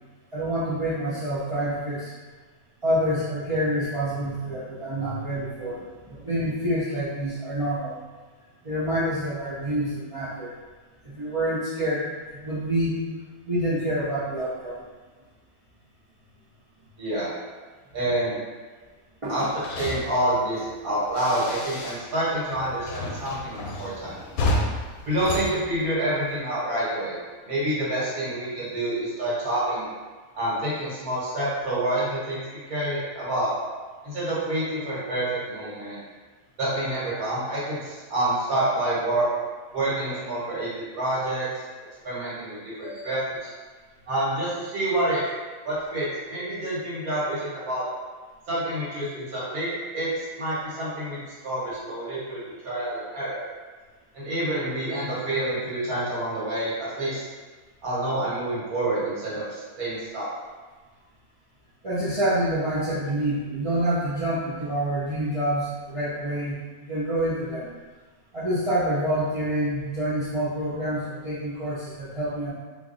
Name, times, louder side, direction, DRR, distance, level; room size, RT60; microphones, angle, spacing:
voice 1, 0.3-2.1 2.8-8.0 8.6-10.5 11.0-13.0 13.4-14.8 19.2-19.4 42.8-43.1 61.8-67.7 68.3-72.5, right 1 dB, 40° right, -11 dB, 0.4 m, -27 dB
voice 2, 17.0-17.3 17.9-18.4 19.3-19.5 19.8-24.2 25.1-27.2 27.5-29.9 30.4-32.4 32.7-33.5 34.0-36.0 36.6-39.3 39.7-41.6 42.0-43.4 44.1-45.2 45.6-47.9 48.5-53.5 54.1-57.2 57.8-60.3, right 1 dB, 85° right, -9 dB, 1.9 m, -28 dB
sound 1, 19.3-22.3 22.5-26.4, left 1 dB, 80° left, 1.0 m, -32 dB
3.2 x 2.3 x 3.8 m, 1.4 s
omnidirectional pair, 1.5 m